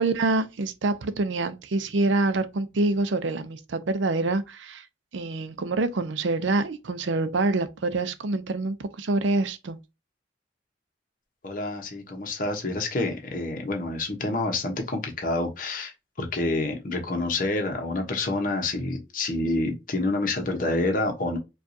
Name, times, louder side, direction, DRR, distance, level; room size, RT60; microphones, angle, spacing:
voice 1, 0.0-4.9 5.1-9.8, right 2 dB, 90° right, 0.5 m, -26 dB
voice 2, 11.4-15.9 16.2-21.4, left 2 dB, 45° left, 0.9 m, -28 dB
4.5 x 2.4 x 2.7 m
head